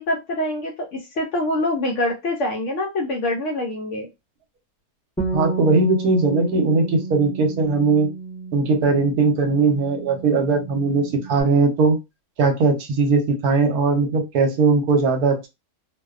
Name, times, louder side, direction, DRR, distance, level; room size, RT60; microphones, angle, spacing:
voice 1, 0.0-4.1, left 1 dB, 65° left, 1 dB, 0.8 m, -25 dB
Bass guitar, 5.2-11.4, right 4 dB, 10° left, 0.3 m, -32 dB
voice 2, 5.3-8.1 8.5-12.0 12.4-15.5, right 4 dB, 75° right, 4 dB, 1.2 m, -19 dB
2.6 x 2.2 x 2.3 m, 0.23 s
omnidirectional pair, 1.6 m